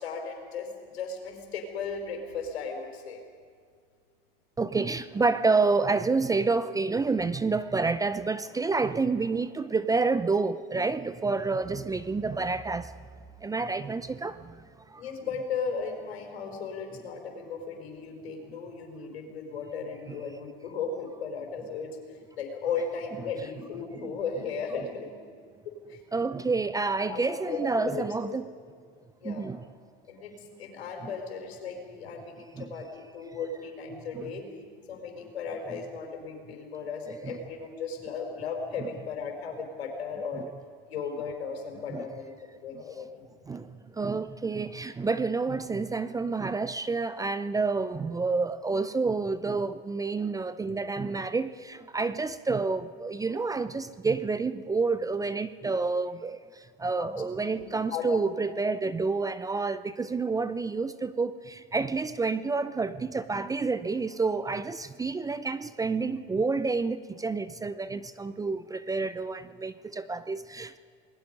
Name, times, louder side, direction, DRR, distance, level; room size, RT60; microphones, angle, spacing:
voice 1, 0.0-3.2 15.0-25.1 25.6-26.0 27.1-28.4 29.2-29.5 30.1-34.4 34.9-40.4 40.9-42.3 42.6-43.5 57.0-57.1 57.4-57.6 57.9-58.3, left 5 dB, 90° left, 3 dB, 4.5 m, -36 dB
voice 2, 4.6-12.9 13.4-14.6 14.9-15.0 20.1-20.2 26.1-28.5 29.2-29.6 31.0-31.1 32.6-32.7 34.1-34.3 35.7-35.8 37.2-37.4 40.4-40.5 41.9-42.1 43.5-70.8, right 4 dB, 10° right, 14 dB, 0.5 m, -29 dB
29.0 x 20.5 x 5.3 m, 2.1 s
supercardioid pair, 115°, 30 cm